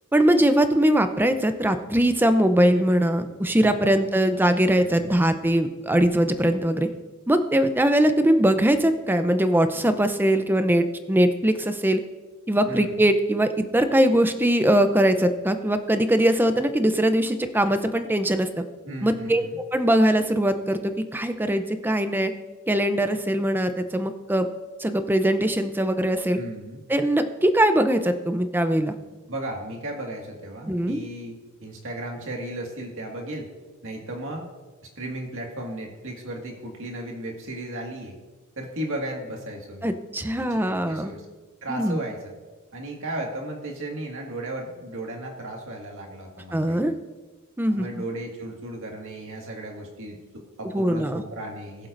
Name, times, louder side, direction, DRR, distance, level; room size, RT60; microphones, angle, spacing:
voice 1, 0.1-6.9 7.3-12.0 12.5-18.6 19.0-19.5 19.7-22.3 22.7-24.5 24.8-26.4 26.9-28.9 30.7-31.0 39.8-41.1 41.7-42.0 46.5-46.9 47.6-47.8 50.7-51.2, right 1 dB, 10° right, 9 dB, 0.6 m, -21 dB
voice 2, 3.6-4.0 4.8-5.1 12.7-13.0 18.8-19.6 26.3-26.8 29.3-33.5 33.8-34.5 35.0-38.1 38.6-39.9 40.4-41.3 41.6-42.3 42.7-46.8 47.7-51.9, right 1 dB, 65° right, 1 dB, 1.9 m, -35 dB
20.0 x 7.6 x 2.6 m, 1.3 s
head